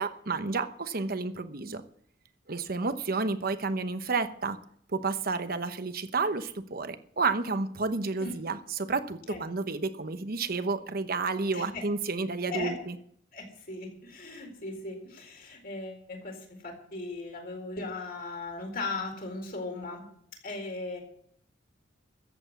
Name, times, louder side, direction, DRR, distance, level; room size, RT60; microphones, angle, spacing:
voice 1, 0.0-1.8 2.5-4.6 4.9-13.0, right 4 dB, 50° right, 10 dB, 1.0 m, -31 dB
voice 2, 11.5-11.8 12.5-12.8 13.3-20.1 20.4-21.0, left 3 dB, 50° left, 2 dB, 4.3 m, -38 dB
14.0 x 8.1 x 8.2 m, 0.66 s
head